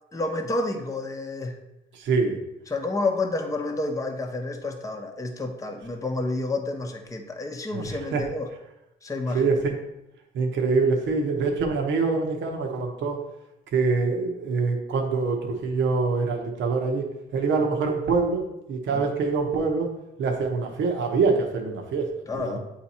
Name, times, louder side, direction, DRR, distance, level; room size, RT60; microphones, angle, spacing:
voice 1, 0.1-1.6 2.7-8.5 9.0-9.5 18.9-19.1 22.3-22.6, left 2 dB, 15° left, 3 dB, 0.7 m, -29 dB
voice 2, 1.9-2.4 7.7-7.8 8.1-8.2 9.3-9.8 10.3-13.2 13.7-17.0 17.3-18.4 18.7-19.9 20.2-22.1 22.3-22.6, right 4 dB, 70° right, 2 dB, 0.9 m, -24 dB
8.3 x 2.8 x 4.2 m, 0.90 s
cardioid pair, 90°, 20 cm